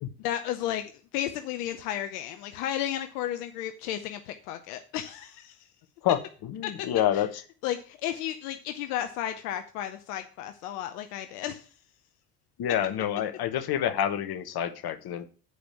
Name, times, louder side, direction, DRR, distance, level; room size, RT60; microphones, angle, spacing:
voice 1, 0.2-5.6 6.6-6.9 7.1-7.2 7.6-11.7, left 11 dB, 80° left, 7 dB, 0.8 m, -33 dB
voice 2, 6.0-7.4 12.6-15.2, left 10 dB, 55° left, 10 dB, 1.3 m, -28 dB
8.1 x 5.1 x 7.0 m, 0.38 s
hypercardioid pair, 60°, 45 cm